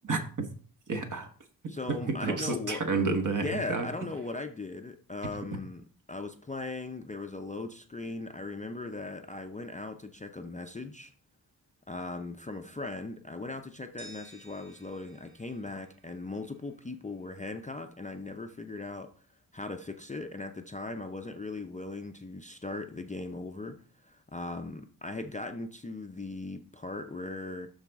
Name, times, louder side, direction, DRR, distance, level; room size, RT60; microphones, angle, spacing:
voice 1, 0.1-0.5 0.9-1.3 1.9-3.9, right 3 dB, 50° right, 1.2 m, -30 dB
voice 2, 1.7-2.8 3.4-5.8 6.1-11.1 11.9-19.1 19.5-27.7, left 2 dB, 20° left, 0.4 m, -38 dB
sound 1, 14.0-16.9, right 1 dB, 25° right, 3.0 m, -55 dB
12.0 x 4.0 x 3.5 m
wide cardioid pair, 150°, 39 cm